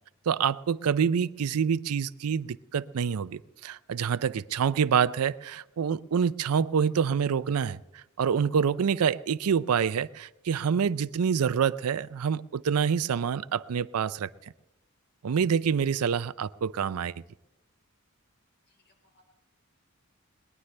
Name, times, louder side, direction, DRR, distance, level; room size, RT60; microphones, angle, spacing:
voice 1, 0.3-14.3 15.2-17.1, right 7 dB, 85° right, 17 dB, 0.4 m, -27 dB
voice 2, 18.7-19.2, left 1 dB, 50° left, 2 dB, 4.3 m, -67 dB
21.0 x 19.0 x 3.3 m, 0.97 s
head